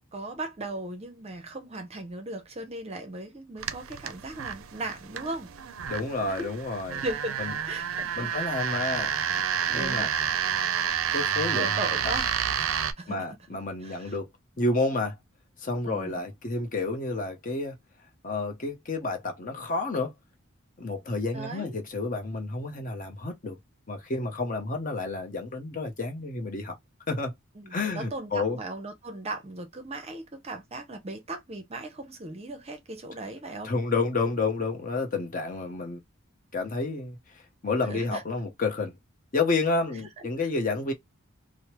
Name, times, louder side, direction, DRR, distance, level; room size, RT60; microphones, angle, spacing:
voice 1, 0.1-5.5 6.4-6.5 6.9-7.4 7.6-8.3 8.6-9.0 9.7-10.1 11.5-12.3 12.6-13.2 13.8-14.1 15.8-16.1 21.3-21.7 27.6-33.7 37.9-38.2, right 2 dB, 30° right, 0.6 m, -37 dB
sound 1, 3.6-12.9, right 8 dB, 70° right, 0.4 m, -29 dB
voice 2, 5.9-7.0 7.4-7.5 8.2-9.1 9.7-10.1 11.1-12.1 13.1-14.3 14.6-15.1 15.6-17.8 18.2-20.1 20.8-23.6 23.9-26.8 27.1-27.3 27.7-28.6 33.6-36.0 36.5-37.2 37.6-39.0 39.3-40.9, left 3 dB, 40° left, 0.7 m, -30 dB
3.1 x 2.0 x 2.9 m
head